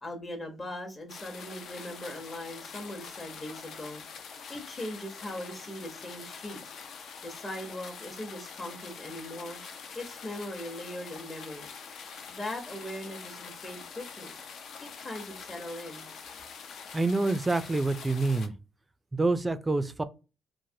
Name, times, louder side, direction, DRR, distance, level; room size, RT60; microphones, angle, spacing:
voice 1, 0.0-4.0 4.5-6.7 7.2-9.6 9.9-11.7 12.3-14.3 14.8-16.1, left 1 dB, 30° left, 0.8 m, -40 dB
sound 1, 1.1-18.5, left 6 dB, 70° left, 0.5 m, -45 dB
voice 2, 16.9-18.5 19.1-20.0, right 2 dB, 20° right, 0.3 m, -27 dB
3.1 x 2.1 x 2.6 m
cardioid pair, 85°, 0 cm